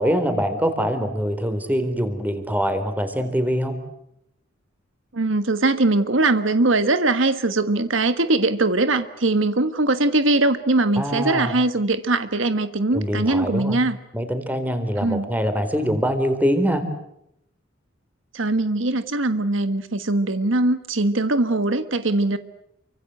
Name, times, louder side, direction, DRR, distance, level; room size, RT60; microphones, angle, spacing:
voice 1, 0.0-3.8 11.0-11.5 12.9-13.8 14.1-16.8, equal, 10° right, 9 dB, 4.0 m, -23 dB
voice 2, 5.1-14.0 15.0-15.3 18.3-22.4, right 2 dB, 70° right, 11 dB, 1.4 m, -21 dB
29.0 x 25.0 x 7.9 m, 0.78 s
head